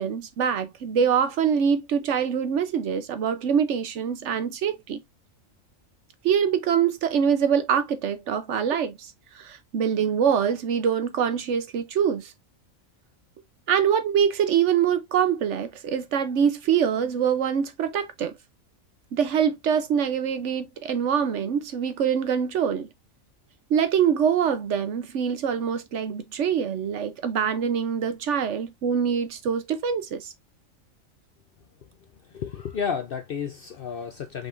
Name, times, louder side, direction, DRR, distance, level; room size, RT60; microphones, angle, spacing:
voice 1, 0.0-5.0 6.2-12.3 13.7-18.3 19.1-22.9 23.7-30.3, right 7 dB, 65° right, 0.9 m, -24 dB
voice 2, 32.3-34.5, left 7 dB, 60° left, 0.6 m, -31 dB
5.2 x 3.4 x 2.4 m
omnidirectional pair, 1.4 m